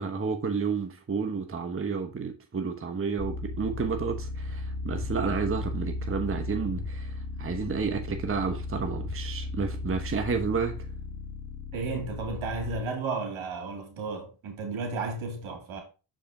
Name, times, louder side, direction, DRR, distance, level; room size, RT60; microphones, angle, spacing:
voice 1, 0.0-10.9, right 5 dB, 25° right, 1.0 m, -31 dB
sound 1, 3.2-12.8, left 2 dB, 50° left, 1.4 m, -35 dB
voice 2, 11.7-15.8, right 3 dB, 80° right, 2.6 m, -33 dB
6.5 x 5.1 x 3.7 m
cardioid pair, 80°, 48 cm